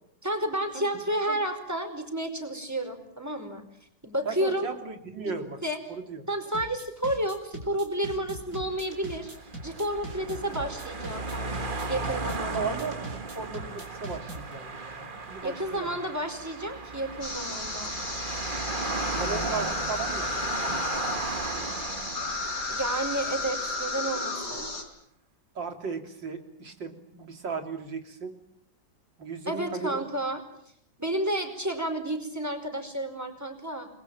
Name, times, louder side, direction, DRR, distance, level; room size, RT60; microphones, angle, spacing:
voice 1, 0.2-3.7 4.0-4.7 5.2-5.3 5.6-5.8 6.3-9.3 9.6-12.8 15.4-17.9 22.7-24.7 29.5-30.4 31.0-33.9, right 1 dB, 10° right, 6 dB, 4.9 m, -31 dB
voice 2, 4.3-5.6 5.9-6.2 12.5-16.0 19.2-21.0 25.6-28.4 29.2-30.0, right 4 dB, 80° right, 6 dB, 3.9 m, -36 dB
sound 1, 6.5-14.5, right 1 dB, 55° right, 5.1 m, -41 dB
sound 2, 8.7-24.1, right 3 dB, 30° right, 1.5 m, -36 dB
sound 3, 17.2-24.8, left 3 dB, 65° left, 5.2 m, -33 dB
29.5 x 22.0 x 9.1 m, 0.72 s
omnidirectional pair, 2.0 m